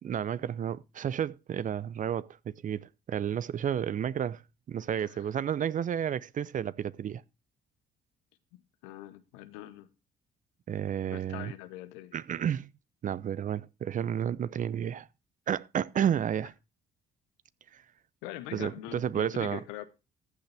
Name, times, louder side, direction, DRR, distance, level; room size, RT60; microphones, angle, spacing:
voice 1, 0.0-4.4 4.7-7.2 10.7-11.5 12.1-12.7 13.0-15.1 15.5-16.5 17.7-17.8 18.5-19.6, right 9 dB, 45° right, 0.6 m, -31 dB
voice 2, 8.8-9.9 11.1-12.2 18.2-19.8, left 14 dB, 85° left, 1.0 m, -43 dB
14.5 x 8.0 x 3.4 m
hypercardioid pair, 55°, 18 cm